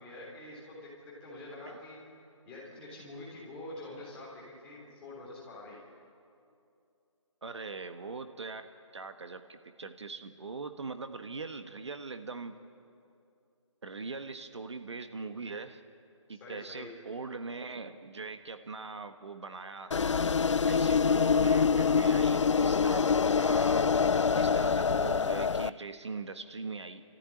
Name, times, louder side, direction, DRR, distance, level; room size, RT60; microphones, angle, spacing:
voice 1, 0.0-2.0 2.5-5.8 16.4-16.9 20.6-22.1, left 1 dB, 5° left, -7 dB, 3.5 m, -46 dB
voice 2, 7.4-12.6 13.8-15.8 16.3-20.0 20.7-23.1 23.4-27.0, right 4 dB, 60° right, 8 dB, 1.4 m, -41 dB
sound 1, 19.9-25.7, left 5 dB, 65° left, 0.6 m, -25 dB
29.5 x 14.5 x 9.9 m, 2.6 s
hypercardioid pair, 175°, 16 cm